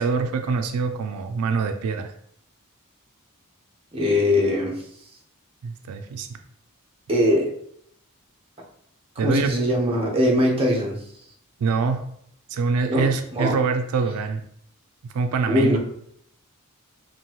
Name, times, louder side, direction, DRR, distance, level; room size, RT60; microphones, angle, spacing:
voice 1, 0.0-2.1 5.6-6.3 9.2-9.5 11.6-12.0 12.5-14.4 15.0-15.8, right 5 dB, 90° right, 7 dB, 0.4 m, -24 dB
voice 2, 3.9-4.8 7.1-7.5 9.2-11.0 12.9-13.6 15.5-15.8, left 1 dB, 25° right, -2 dB, 1.0 m, -21 dB
5.3 x 2.6 x 3.0 m, 0.68 s
head